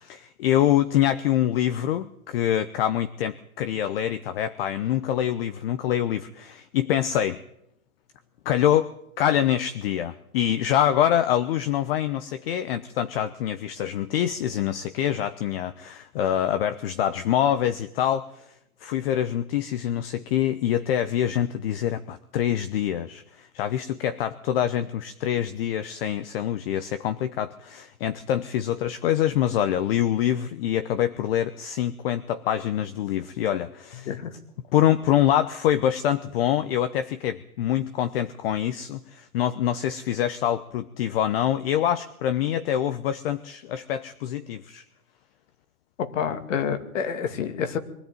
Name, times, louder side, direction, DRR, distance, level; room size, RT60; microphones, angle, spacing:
voice 1, 0.0-7.4 8.4-18.5 18.8-34.1 34.7-44.8, left 11 dB, 40° left, 12 dB, 0.9 m, -25 dB
voice 2, 34.0-34.3 46.0-47.8, left 7 dB, 60° left, 8 dB, 2.5 m, -28 dB
23.0 x 14.0 x 9.3 m, 0.81 s
hypercardioid pair, 130°, 43 cm